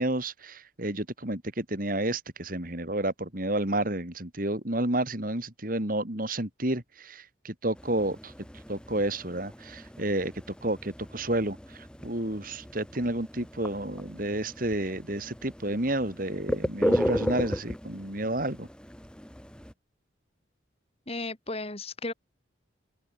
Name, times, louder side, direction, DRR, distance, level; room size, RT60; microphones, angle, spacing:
voice 1, 0.0-8.3 8.7-10.3 10.6-18.7, right 1 dB, 45° right, 3.3 m, -30 dB
sound 1, 7.8-19.7, equal, 5° left, 2.1 m, -35 dB
voice 2, 21.1-22.1, left 2 dB, 30° left, 2.7 m, -34 dB
open air
head